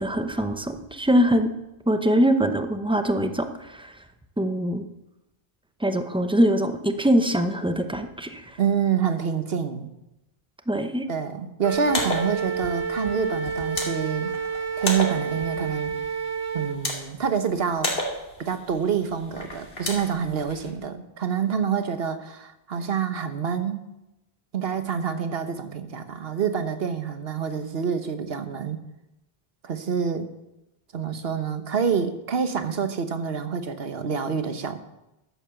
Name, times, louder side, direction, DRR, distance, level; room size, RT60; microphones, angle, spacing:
voice 1, 0.0-1.5 1.9-3.9 4.4-4.9 5.8-8.6 10.7-11.1, equal, 5° right, 7 dB, 0.8 m, -23 dB
voice 2, 8.6-9.9 11.1-14.3 14.8-16.0 16.5-17.9 18.4-23.8 24.5-28.8 29.6-30.3 30.9-34.8, right 7 dB, 70° right, 9 dB, 1.3 m, -27 dB
Wind instrument woodwind instrument, 11.6-16.8, right 5 dB, 90° right, 1.3 m, -30 dB
sound 1, 11.7-20.7, left 1 dB, 75° left, 2.8 m, -34 dB
13.5 x 8.7 x 7.0 m, 0.95 s
omnidirectional pair, 1.0 m